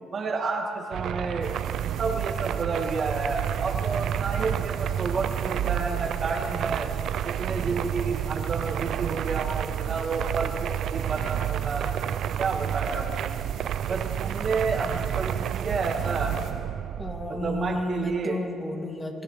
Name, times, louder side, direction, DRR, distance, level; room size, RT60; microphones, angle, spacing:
voice 1, 0.1-1.5 2.0-6.9 7.2-11.9 12.4-13.4 13.9-16.4 17.3-18.4, right 4 dB, 50° right, 2 dB, 1.9 m, -30 dB
sound 1, 0.9-18.2, right 10 dB, 75° right, 0.3 m, -30 dB
sound 2, 1.4-16.5, right 6 dB, 90° right, 2.9 m, -47 dB
voice 2, 17.0-19.2, left 1 dB, 20° left, 1 dB, 2.2 m, -32 dB
29.5 x 15.0 x 3.2 m, 2.7 s
cardioid pair, 90°, 0 cm